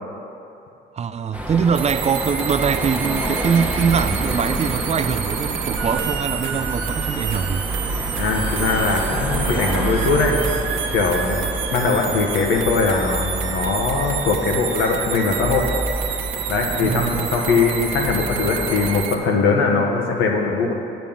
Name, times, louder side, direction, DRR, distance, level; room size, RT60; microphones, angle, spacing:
voice 1, 0.9-7.6 16.8-17.3, right 6 dB, 35° right, 11 dB, 0.3 m, -23 dB
sound 1, 1.3-19.0, right 2 dB, 5° right, 1.1 m, -28 dB
sound 2, 1.7-19.2, right 7 dB, 80° right, 0.8 m, -29 dB
voice 2, 8.1-10.4 10.9-15.7 16.5-20.7, left 4 dB, 90° left, 1 dB, 1.2 m, -21 dB
8.4 x 5.3 x 7.3 m, 2.8 s
cardioid pair, 90°, 20 cm